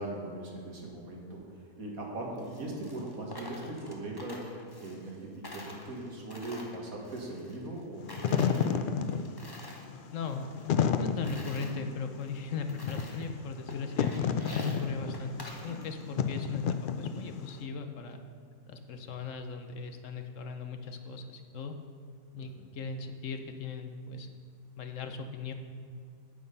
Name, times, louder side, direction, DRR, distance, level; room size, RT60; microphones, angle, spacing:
voice 1, 0.0-4.5 4.8-9.0 14.7-14.8 22.4-22.7, right 1 dB, 75° right, -1 dB, 2.3 m, -40 dB
Coin (dropping), 2.4-5.2 5.4-7.8 8.1-9.9 10.2-11.7 12.3-12.4 12.7-13.3 13.7-16.1, left 1 dB, 15° left, 1.1 m, -48 dB
Wind / Fire, 8.0-17.5, left 7 dB, 85° left, 0.4 m, -31 dB
voice 2, 10.1-10.5 11.0-14.1 14.5-18.2 18.7-21.8 22.3-24.3 24.8-25.5, left 5 dB, 65° left, 7 dB, 1.0 m, -38 dB
sound 1, 11.7-12.5 15.7-16.6, right 2 dB, 50° right, 0.5 m, -49 dB
9.3 x 8.8 x 5.5 m, 2.3 s
omnidirectional pair, 1.5 m